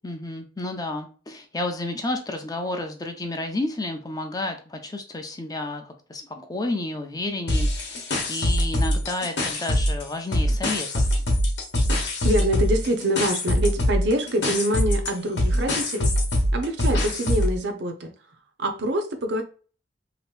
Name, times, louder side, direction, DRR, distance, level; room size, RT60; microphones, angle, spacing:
voice 1, 0.0-11.2, left 2 dB, 20° left, 0.5 m, -31 dB
sound 1, 7.5-10.0 10.3-17.6, equal, 65° left, 0.9 m, -23 dB
voice 2, 12.2-16.1 16.5-18.1 18.6-19.4, equal, 60° right, 0.6 m, -25 dB
2.9 x 2.6 x 3.2 m
head